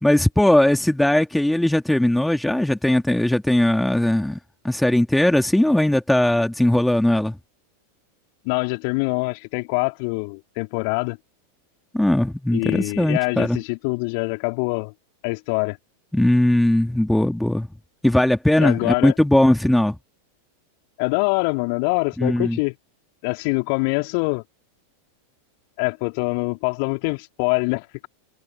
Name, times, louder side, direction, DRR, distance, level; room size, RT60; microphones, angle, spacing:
voice 1, 0.0-4.4 4.6-7.4 11.9-13.6 16.1-17.7 18.0-20.0 22.2-22.6, left 1 dB, 5° left, 3.0 m, -19 dB
voice 2, 8.4-11.2 12.5-14.9 15.2-15.8 18.6-19.1 21.0-22.7 23.2-24.4 25.8-28.1, left 35 dB, 45° left, 4.6 m, -24 dB
figure-of-eight pair, 90°, 0 cm